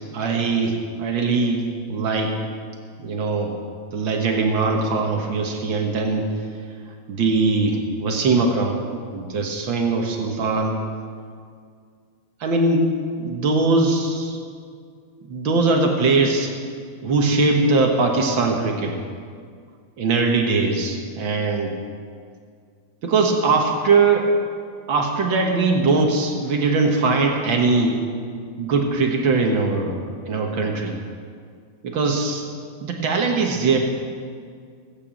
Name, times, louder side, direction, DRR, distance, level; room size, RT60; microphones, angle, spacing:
voice 1, 0.1-1.6 1.9-2.4 3.0-3.5 3.9-6.4 7.1-8.8 9.1-10.8 12.4-12.9 13.2-14.4 15.3-16.5 17.0-19.0 20.0-21.7 23.0-24.3 24.9-28.0 28.6-30.0 30.3-30.9 31.8-32.5 32.8-33.8, right 3 dB, 80° right, 2 dB, 1.1 m, -21 dB
18.0 x 8.9 x 7.6 m, 2.1 s
omnidirectional pair, 4.2 m